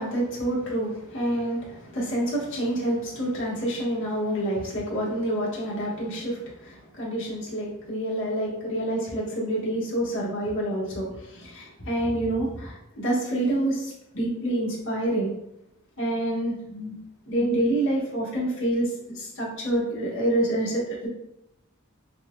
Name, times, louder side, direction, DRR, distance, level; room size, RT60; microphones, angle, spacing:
voice 1, 0.0-15.3 16.0-17.0 17.3-21.1, right 1 dB, 65° left, -6 dB, 1.5 m, -27 dB
5.8 x 2.4 x 2.3 m, 0.81 s
head